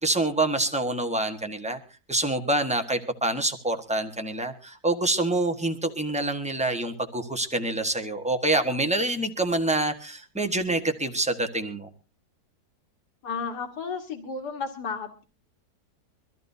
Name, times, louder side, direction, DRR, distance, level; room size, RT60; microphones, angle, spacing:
voice 1, 0.0-1.8 2.1-11.9, right 2 dB, 5° right, 5 dB, 1.1 m, -26 dB
voice 2, 13.2-15.2, left 5 dB, 80° left, 5 dB, 2.1 m, -33 dB
24.0 x 14.0 x 2.7 m, 0.33 s
omnidirectional pair, 1.7 m